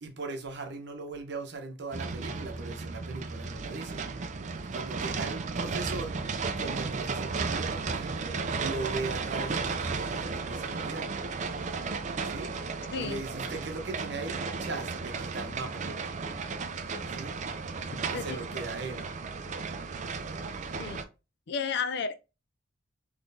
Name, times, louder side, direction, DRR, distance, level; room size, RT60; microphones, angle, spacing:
voice 1, 0.0-4.1 4.5-6.2 6.6-11.1 12.2-12.5 13.0-15.9 17.1-17.4 18.1-19.1, right 3 dB, 60° right, 0.8 m, -39 dB
sound 1, 1.9-21.0, right 4 dB, 40° right, 0.4 m, -34 dB
voice 2, 21.5-22.2, left 5 dB, 60° left, 0.4 m, -32 dB
3.9 x 3.1 x 2.6 m
head